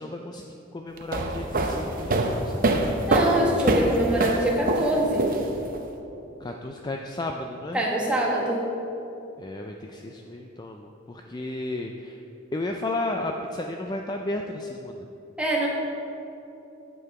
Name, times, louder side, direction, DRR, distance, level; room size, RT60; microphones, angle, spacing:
voice 1, 0.0-2.9 6.4-7.8 9.4-12.2 12.5-15.0, left 2 dB, 20° left, 3 dB, 0.4 m, -33 dB
sound 1, 1.0-5.8, right 2 dB, 45° right, 0.7 m, -24 dB
voice 2, 3.1-5.3 7.7-8.6 15.4-15.7, right 1 dB, 5° right, -3 dB, 1.4 m, -24 dB
9.5 x 7.7 x 4.8 m, 2.9 s
head